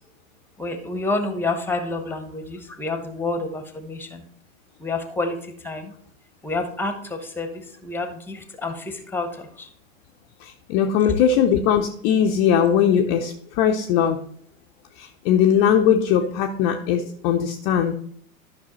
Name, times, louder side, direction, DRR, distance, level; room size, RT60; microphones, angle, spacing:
voice 1, 0.6-4.2 4.8-5.4 5.6-5.9 6.4-9.7, left 2 dB, 5° left, 8 dB, 1.0 m, -29 dB
voice 2, 10.4-14.2 15.0-17.9, left 8 dB, 25° left, 4 dB, 0.6 m, -20 dB
12.5 x 5.8 x 3.0 m, 0.63 s
figure-of-eight pair, 95°, 41 cm